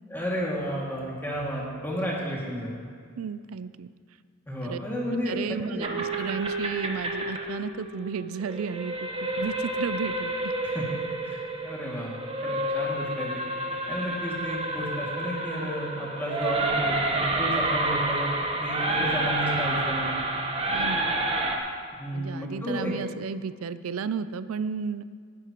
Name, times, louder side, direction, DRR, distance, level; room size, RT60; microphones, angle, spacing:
voice 1, 0.1-2.7 4.5-6.0 10.6-10.9 11.2-13.4 13.9-20.2 22.0-22.9, equal, 10° left, -4 dB, 2.3 m, -32 dB
voice 2, 3.2-3.9 4.6-4.8 5.3-8.9 9.4-10.5 14.0-14.1 20.7-21.2 22.1-25.0, right 6 dB, 90° right, 14 dB, 0.4 m, -33 dB
sound 1, 5.8-21.6, right 2 dB, 25° right, 1.1 m, -29 dB
18.0 x 10.5 x 3.0 m, 2.1 s
head